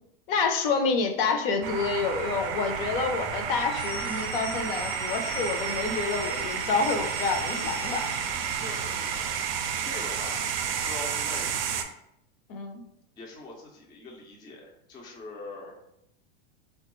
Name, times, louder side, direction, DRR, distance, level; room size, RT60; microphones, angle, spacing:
voice 1, 0.3-8.1 12.5-12.8, left 4 dB, 60° left, 6 dB, 0.6 m, -28 dB
sound 1, 1.6-11.8, right 7 dB, 65° right, 0.5 m, -31 dB
sound 2, 3.6-9.3, left 2 dB, 90° left, 1.1 m, -41 dB
voice 2, 8.5-10.4 10.8-11.9 13.2-15.8, left 2 dB, 15° left, -1 dB, 0.4 m, -43 dB
3.3 x 2.2 x 3.0 m, 0.79 s
supercardioid pair, 140°, 31 cm